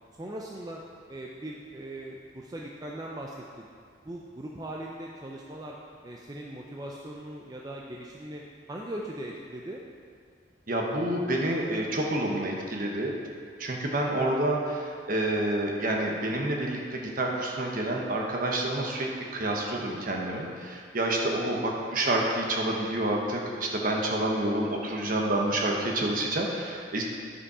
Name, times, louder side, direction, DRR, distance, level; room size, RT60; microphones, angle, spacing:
voice 1, 0.2-0.8 1.1-3.7 4.0-5.8 6.0-8.4 8.7-9.8 19.8-20.1 21.6-22.0, right 1 dB, 20° right, -2 dB, 0.5 m, -40 dB
voice 2, 10.7-13.1 13.6-27.0, right 1 dB, 50° right, 0 dB, 1.1 m, -28 dB
10.0 x 5.3 x 4.9 m, 2.2 s
head